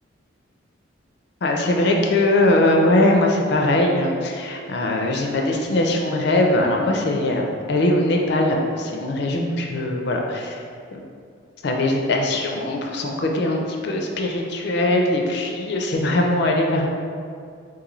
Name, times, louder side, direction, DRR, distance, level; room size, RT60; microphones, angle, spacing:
voice 1, 1.4-10.6 10.9-11.1 11.6-16.9, left 1 dB, 55° left, 1 dB, 0.4 m, -21 dB
3.8 x 2.6 x 3.0 m, 2.3 s
head